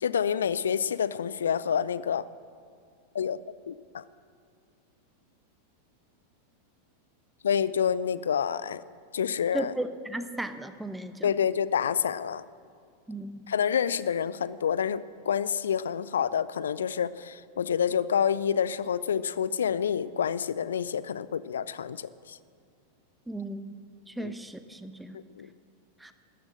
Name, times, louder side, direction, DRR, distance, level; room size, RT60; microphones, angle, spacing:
voice 1, 0.0-2.2 3.1-3.4 3.7-4.0 7.4-8.8 9.1-9.7 11.2-12.5 13.5-22.4 24.2-24.3 25.1-25.5, left 8 dB, 65° left, 17 dB, 0.4 m, -28 dB
voice 2, 9.5-11.3 13.1-13.4 23.3-23.8 24.2-25.2 26.0-26.1, right 1 dB, 5° right, 10 dB, 0.8 m, -35 dB
13.0 x 10.5 x 7.6 m, 2.3 s
figure-of-eight pair, 90°, 0 cm